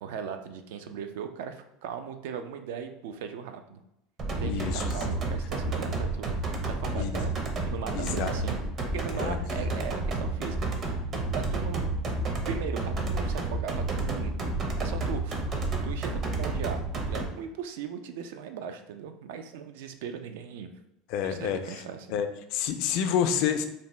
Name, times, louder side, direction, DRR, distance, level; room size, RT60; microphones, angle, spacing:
voice 1, 0.0-3.8 4.4-7.4 7.6-8.6 8.9-11.0 11.3-11.9 12.5-14.3 14.8-15.5 15.8-20.7 21.2-22.2, right 7 dB, 80° right, 7 dB, 0.3 m, -38 dB
sound 1, 4.2-17.3, right 2 dB, 40° right, 0.6 m, -30 dB
voice 2, 4.4-5.0 6.9-7.2 7.9-8.3 9.2-9.4 21.1-21.6 22.1-23.6, left 8 dB, 65° left, 8 dB, 0.3 m, -28 dB
2.7 x 2.1 x 3.1 m, 0.86 s
supercardioid pair, 105°, 0 cm